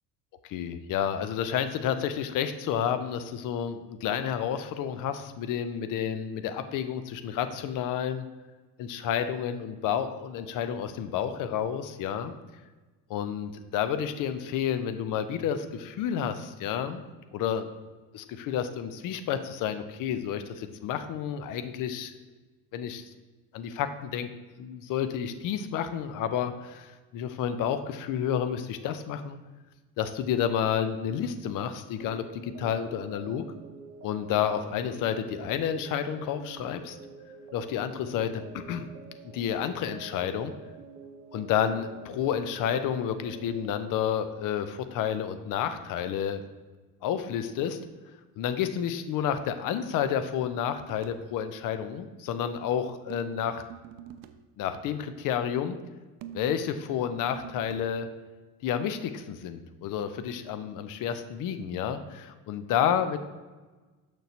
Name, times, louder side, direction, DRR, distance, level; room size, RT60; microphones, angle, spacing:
voice 1, 0.4-8.2 8.8-12.3 13.1-17.0 17.3-17.7 18.1-22.1 22.7-23.1 23.5-24.3 24.6-29.4 30.0-33.4 34.0-37.0 37.5-38.9 39.3-40.5 41.3-46.4 47.0-47.8 48.4-53.6 54.6-55.8 56.3-58.1 58.6-63.2, left 9 dB, 45° left, 10 dB, 0.6 m, -30 dB
sound 1, 32.0-43.7, right 5 dB, 90° right, 0.6 m, -47 dB
sound 2, 50.8-51.3 53.1-54.5 56.2-58.0, right 10 dB, 50° right, 0.5 m, -46 dB
6.4 x 6.2 x 2.8 m, 1.2 s
figure-of-eight pair, 55°, 46 cm